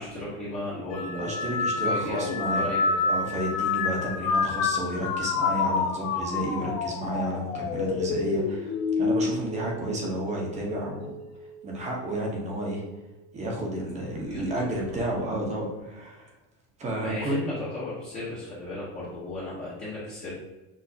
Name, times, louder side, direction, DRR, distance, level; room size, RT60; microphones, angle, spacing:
voice 1, 0.0-3.2 14.2-15.0 17.0-20.3, left 2 dB, 20° left, -9 dB, 0.9 m, -35 dB
sound 1, 0.9-10.5 11.0-11.5 12.5-12.9, left 4 dB, 55° left, 0.7 m, -28 dB
voice 2, 1.2-2.7 3.1-8.7 9.0-11.1 11.6-12.8 13.3-16.3 16.8-17.5, right 1 dB, 20° right, -1 dB, 0.8 m, -31 dB
6.4 x 2.6 x 2.7 m, 1.1 s
cardioid pair, 170°, 37 cm